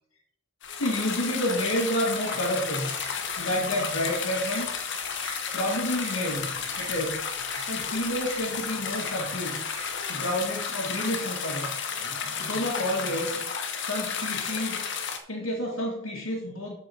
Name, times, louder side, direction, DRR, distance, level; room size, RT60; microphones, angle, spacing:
sound 1, 0.6-15.2, left 6 dB, 60° left, 1.2 m, -32 dB
sound 2, 0.6-5.4 5.7-10.5, right 4 dB, 70° right, 3.0 m, -47 dB
voice 1, 0.7-2.9 3.4-4.7 5.5-7.2 7.5-9.6 10.1-13.4 13.8-14.9 15.3-16.7, left 1 dB, 90° left, -2 dB, 1.9 m, -30 dB
13.5 x 4.8 x 4.4 m, 0.77 s
head